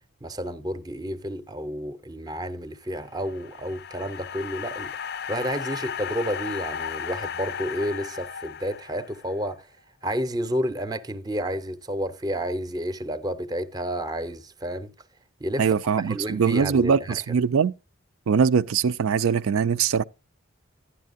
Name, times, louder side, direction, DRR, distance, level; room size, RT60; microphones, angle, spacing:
voice 1, 0.2-5.0 5.3-9.7 10.0-14.9 15.4-15.7 16.1-17.2, equal, 20° right, 0.6 m, -30 dB
sound 1, 3.0-9.4, left 7 dB, 50° left, 0.4 m, -35 dB
voice 2, 15.6-17.7 18.3-20.0, right 6 dB, 80° right, 0.4 m, -22 dB
11.5 x 10.0 x 2.5 m
head